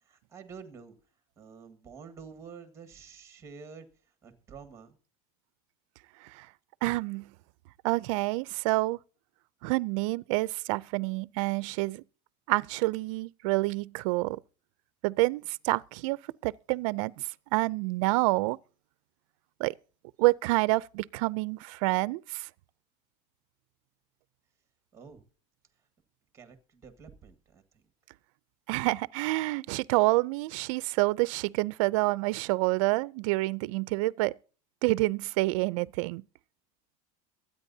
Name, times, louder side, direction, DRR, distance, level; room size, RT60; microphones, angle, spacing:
voice 1, 0.0-1.0 1.4-3.9 4.2-5.0 24.9-25.2 26.3-27.8, right 6 dB, 15° right, 1.5 m, -49 dB
voice 2, 6.8-7.3 7.8-9.0 9.6-12.0 12.5-14.4 15.0-16.2 16.4-18.6 19.6-19.7 20.2-22.5 28.7-34.3 34.8-36.2, right 22 dB, 65° right, 0.4 m, -28 dB
22.5 x 9.2 x 2.7 m
cardioid pair, 165°, 18 cm